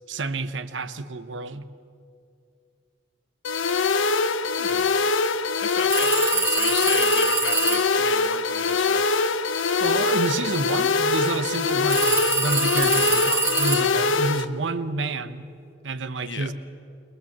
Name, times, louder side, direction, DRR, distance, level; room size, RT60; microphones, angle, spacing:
voice 1, 0.1-1.7 9.8-15.4 15.8-16.5, right 3 dB, 70° right, 11 dB, 0.9 m, -29 dB
sound 1, 3.4-14.4, left 4 dB, 85° left, 0.7 m, -23 dB
voice 2, 4.5-5.0 5.6-9.1 12.9-13.2 16.2-16.5, left 5 dB, 65° left, 8 dB, 1.3 m, -34 dB
sound 2, 5.9-8.0 11.9-14.1, right 3 dB, 15° right, 0.9 m, -24 dB
22.0 x 21.5 x 7.4 m, 2.5 s
head